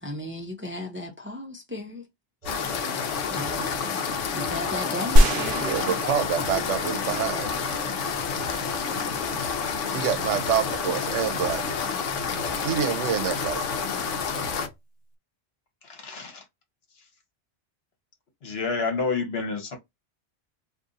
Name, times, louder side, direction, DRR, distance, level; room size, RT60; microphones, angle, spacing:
voice 1, 0.0-2.1 3.1-4.0 4.3-6.0, left 1 dB, 15° right, 0.4 m, -36 dB
voice 2, 2.4-2.8 9.3-9.6 15.8-16.4 18.4-19.8, left 4 dB, 60° left, 1.2 m, -31 dB
sound 1, 2.4-14.7, equal, 35° right, 1.0 m, -41 dB
sound 2, 2.5-14.7, left 6 dB, 90° left, 0.9 m, -29 dB
sound 3, 5.2-7.4, equal, 60° right, 0.7 m, -22 dB
voice 3, 5.6-7.5 7.9-8.1 8.5-8.6 9.9-11.8 12.2-12.3 12.6-13.6, right 8 dB, 85° right, 0.9 m, -27 dB
2.6 x 2.5 x 3.9 m
omnidirectional pair, 1.2 m